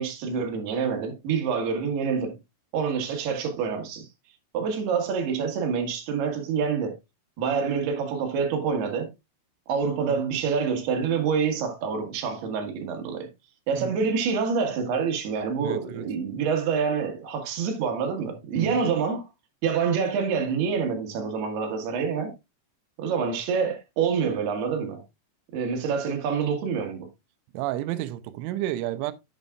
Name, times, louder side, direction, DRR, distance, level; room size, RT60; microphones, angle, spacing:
voice 1, 0.0-2.4 2.7-4.1 4.5-6.9 7.4-9.1 9.7-13.3 13.7-19.3 19.6-22.3 23.0-25.0 25.5-27.1, right 6 dB, 65° right, 3.4 m, -27 dB
voice 2, 15.6-16.1 18.5-18.8 27.5-29.1, right 14 dB, 90° right, 3.2 m, -31 dB
10.5 x 8.2 x 2.4 m
omnidirectional pair, 5.5 m